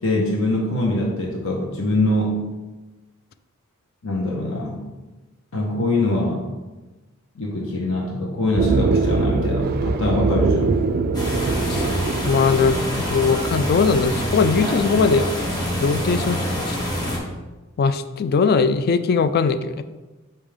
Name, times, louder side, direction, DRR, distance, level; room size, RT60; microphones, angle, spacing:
voice 1, 0.0-2.4 4.0-4.8 5.5-6.5 7.4-10.8, left 1 dB, 70° left, -1 dB, 1.0 m, -23 dB
sound 1, 8.6-14.1, right 4 dB, 45° right, 0.3 m, -23 dB
sound 2, 11.1-17.2, equal, 20° left, 1.4 m, -26 dB
voice 2, 12.2-15.3 15.8-16.8 17.8-19.8, left 5 dB, 50° left, 12 dB, 0.3 m, -20 dB
5.5 x 5.4 x 3.5 m, 1.2 s
head